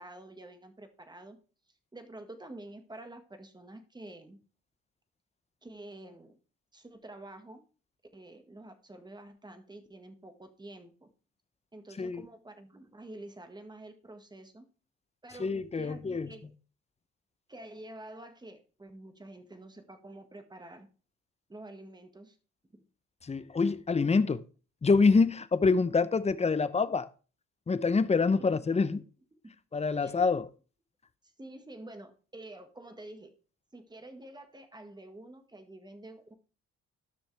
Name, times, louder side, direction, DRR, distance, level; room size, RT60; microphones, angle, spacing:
voice 1, 0.0-1.4 1.9-4.4 5.6-6.4 6.7-7.6 8.1-11.1 11.7-14.7 15.2-16.5 17.5-20.9 21.5-22.4 28.4-28.7 28.9-29.0 30.0-30.2 31.4-33.3 33.7-36.3, right 1 dB, 15° right, 1.7 m, -48 dB
voice 2, 15.4-16.3 23.2-24.4 24.8-27.1 27.7-29.0 29.7-30.5, left 4 dB, 20° left, 0.7 m, -26 dB
13.0 x 6.2 x 3.4 m
cardioid pair, 90°, 30 cm